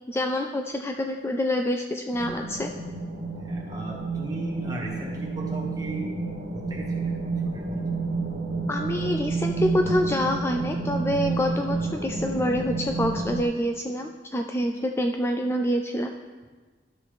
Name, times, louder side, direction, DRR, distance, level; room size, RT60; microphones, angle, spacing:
voice 1, 0.1-2.7 8.7-16.1, left 1 dB, 15° left, 4 dB, 0.3 m, -26 dB
sound 1, 2.1-13.4, right 3 dB, 90° right, 1.4 m, -30 dB
voice 2, 3.4-6.1 6.5-7.1 7.5-8.0, right 1 dB, 20° right, -2 dB, 1.6 m, -37 dB
12.0 x 6.2 x 3.4 m, 1.4 s
head